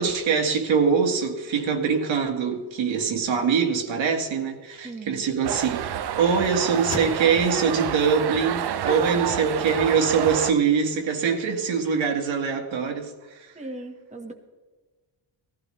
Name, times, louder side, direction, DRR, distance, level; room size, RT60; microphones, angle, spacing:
voice 1, 0.0-13.5, right 6 dB, 75° right, 1.9 m, -23 dB
sound 1, 3.4-9.5, left 4 dB, 80° left, 2.8 m, -44 dB
voice 2, 4.8-5.3 8.8-9.0 11.3-11.4 13.5-14.3, right 1 dB, 15° right, 1.4 m, -36 dB
sound 2, 5.4-10.5, right 10 dB, 55° right, 0.6 m, -29 dB
17.5 x 15.0 x 3.3 m
cardioid pair, 125°, 46 cm